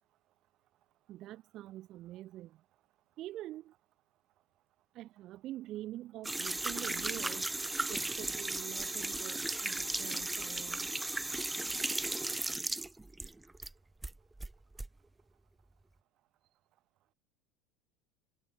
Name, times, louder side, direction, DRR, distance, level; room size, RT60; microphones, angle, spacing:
voice 1, 1.1-2.5 3.2-3.7 4.9-7.5 7.9-10.9, right 14 dB, 45° right, 0.9 m, -45 dB
sound 1, 6.2-13.7 14.0-14.9, right 2 dB, 5° right, 0.8 m, -36 dB
supercardioid pair, 145°, 0 cm